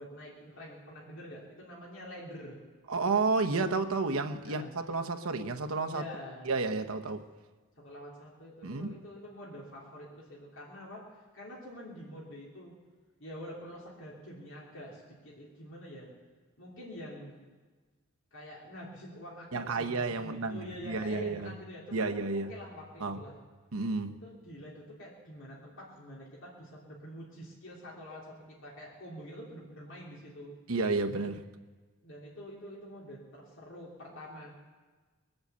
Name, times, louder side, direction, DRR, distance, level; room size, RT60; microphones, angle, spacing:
voice 1, 0.0-2.6 4.4-4.7 5.9-6.5 7.8-12.7 13.2-16.1 16.6-17.4 18.3-23.4 24.2-30.6 32.0-34.6, equal, 65° left, -4 dB, 3.1 m, -46 dB
voice 2, 2.9-6.0 6.4-7.2 8.6-8.9 19.5-21.5 21.9-22.5 23.0-23.2 23.7-24.1 30.7-31.4, right 3 dB, 90° right, 6 dB, 1.0 m, -31 dB
21.0 x 8.0 x 8.1 m, 1.3 s
head